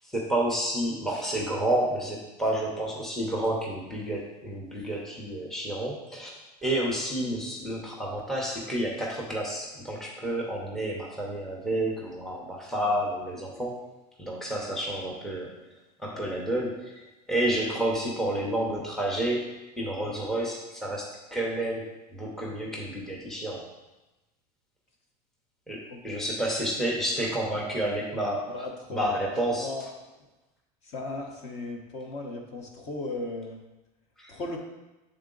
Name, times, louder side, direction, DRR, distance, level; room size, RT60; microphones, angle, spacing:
voice 1, 0.1-13.8 14.2-15.5 16.0-19.5 19.8-23.7 25.7-28.5 28.9-29.7 34.2-34.3, right 1 dB, ahead, -3 dB, 0.7 m, -30 dB
voice 2, 25.9-26.3 28.5-29.9 30.8-33.6 34.3-34.6, left 2 dB, 35° left, 1 dB, 0.9 m, -37 dB
7.0 x 3.8 x 3.8 m, 1.0 s
supercardioid pair, 155°, 20 cm